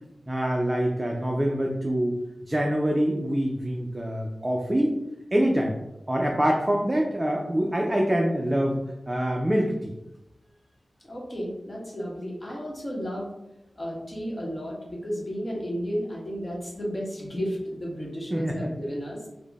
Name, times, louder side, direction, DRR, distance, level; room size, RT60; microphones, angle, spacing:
voice 1, 0.3-2.2 2.5-4.9 5.3-5.7 6.1-9.9 18.3-18.7, equal, 20° right, 0 dB, 0.4 m, -25 dB
voice 2, 11.0-13.3 13.8-19.3, equal, 30° left, -4 dB, 1.1 m, -33 dB
3.6 x 2.0 x 3.4 m, 0.92 s
wide cardioid pair, 85°, 0 cm